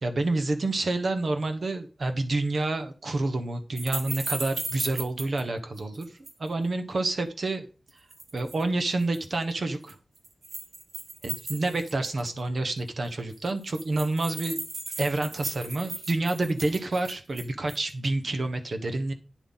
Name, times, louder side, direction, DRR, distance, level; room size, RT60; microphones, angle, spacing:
voice 1, 0.0-6.1 6.4-7.7 8.3-10.0 11.2-14.6 15.0-19.1, right 2 dB, 55° right, 8 dB, 1.2 m, -28 dB
sound 1, 3.8-5.4 5.8-6.5 7.9-8.6 9.0-9.2 9.9-12.4 12.8-12.9 13.0-13.1 13.3-17.9, right 3 dB, 90° right, 2.2 m, -36 dB
9.4 x 7.7 x 4.1 m, 0.33 s
wide cardioid pair, 110°, 0 cm